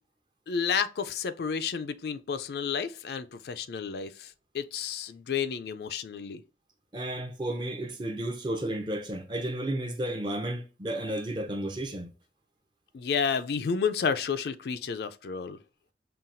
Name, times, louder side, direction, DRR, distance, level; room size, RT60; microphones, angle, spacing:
voice 1, 0.5-6.4 12.9-15.6, left 6 dB, 65° left, 0.4 m, -31 dB
voice 2, 6.9-12.1, right 1 dB, 25° right, 0.6 m, -32 dB
5.6 x 2.3 x 2.5 m
head